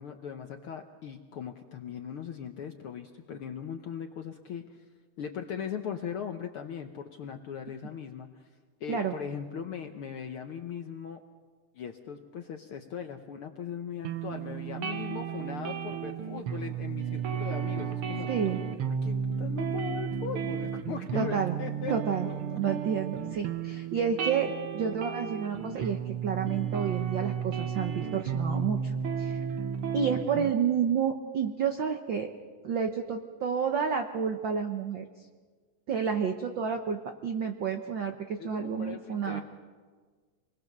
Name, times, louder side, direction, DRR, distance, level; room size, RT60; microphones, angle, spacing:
voice 1, 0.0-4.8 5.2-8.4 8.8-11.2 11.7-18.3 18.9-21.9 22.2-22.6 38.4-39.4, left 7 dB, 70° left, 5 dB, 1.3 m, -39 dB
sound 1, 14.0-30.5, right 7 dB, 65° right, 1.4 m, -33 dB
voice 2, 18.3-18.6 21.1-21.6 21.9-22.3 22.5-29.4 29.9-32.3 32.6-35.0 35.9-39.4, right 7 dB, 85° right, 6 dB, 1.0 m, -30 dB
27.5 x 20.5 x 6.6 m, 1.5 s
omnidirectional pair, 3.6 m